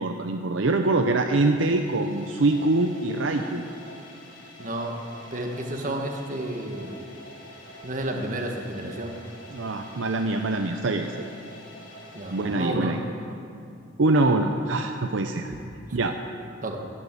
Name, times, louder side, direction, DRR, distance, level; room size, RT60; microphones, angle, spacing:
voice 1, 0.0-3.6 9.5-11.3 12.3-13.0 14.0-15.5 15.9-16.2, right 2 dB, 70° right, 5 dB, 0.7 m, -24 dB
sound 1, 1.5-13.3, equal, 65° left, 3.0 m, -46 dB
voice 2, 4.6-5.0 5.3-7.0 7.8-9.1 12.1-13.0 15.9-16.0 16.6-16.8, right 1 dB, 40° right, 3 dB, 1.6 m, -31 dB
12.0 x 11.5 x 8.3 m, 2.5 s
head